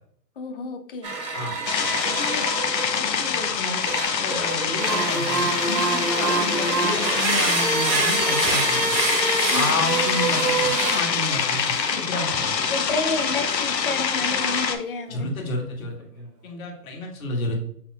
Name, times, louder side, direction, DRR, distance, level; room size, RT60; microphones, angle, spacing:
voice 1, 0.4-1.1 5.6-6.1 9.5-9.8 12.7-15.3, left 3 dB, 35° left, 5 dB, 0.5 m, -30 dB
sound 1, 1.0-3.0 3.9-11.3 12.1-12.4, right 4 dB, 85° right, 1.2 m, -26 dB
sound 2, 1.7-14.8, left 6 dB, 85° left, 0.8 m, -25 dB
voice 2, 2.0-2.5 2.7-9.0 9.5-12.5 15.1-17.6, left 2 dB, 55° left, 0 dB, 1.6 m, -31 dB
Cough, 5.1-5.2 6.2-7.3 7.6-7.7 8.3-8.4 8.9-9.0, right 3 dB, 45° right, 0.6 m, -34 dB
6.1 x 3.6 x 2.3 m, 0.66 s
hypercardioid pair, 145°, 49 cm